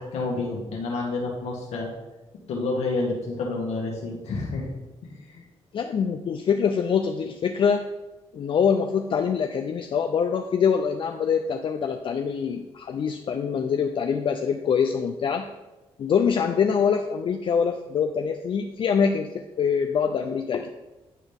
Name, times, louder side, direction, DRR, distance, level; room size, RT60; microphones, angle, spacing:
voice 1, 0.0-1.9 2.5-4.7 5.0-5.4, left 3 dB, 85° left, -2 dB, 1.7 m, -29 dB
voice 2, 5.7-7.9 8.3-15.5 16.0-20.7, left 6 dB, 50° left, 5 dB, 0.4 m, -24 dB
10.0 x 4.1 x 3.5 m, 1.1 s
cardioid pair, 95°, 11 cm